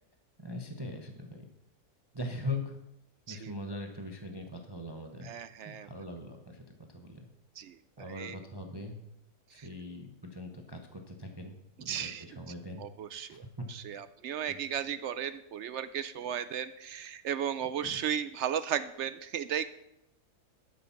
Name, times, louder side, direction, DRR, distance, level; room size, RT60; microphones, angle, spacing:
voice 1, 0.4-1.5 2.1-2.8 3.3-5.3 5.6-7.3 8.0-9.0 9.5-12.8 13.3-13.7 14.5-14.6 17.8-18.0, left 1 dB, 20° right, 3 dB, 0.9 m, -41 dB
voice 2, 5.2-5.9 7.6-7.8 8.2-8.4 11.9-12.2 12.8-13.4 13.7-19.7, right 9 dB, 70° right, 13 dB, 0.6 m, -35 dB
12.5 x 7.1 x 5.9 m, 0.84 s
omnidirectional pair, 1.7 m